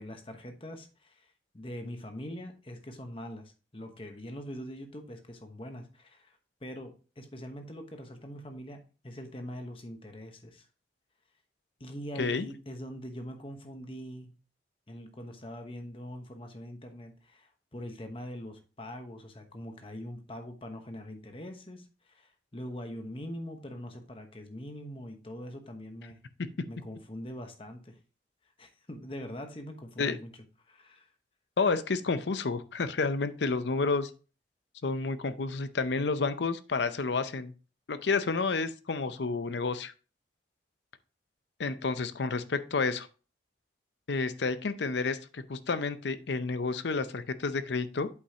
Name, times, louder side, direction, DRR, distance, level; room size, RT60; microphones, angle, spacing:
voice 1, 0.0-10.7 11.8-14.3 14.9-26.2 26.7-28.0 28.6-30.3 30.7-31.1, equal, 30° left, 5 dB, 1.0 m, -43 dB
voice 2, 31.6-34.1 34.8-37.5 37.9-39.9 41.6-43.1 44.1-48.1, left 4 dB, 80° left, 12 dB, 0.6 m, -30 dB
8.2 x 5.4 x 2.9 m, 0.35 s
head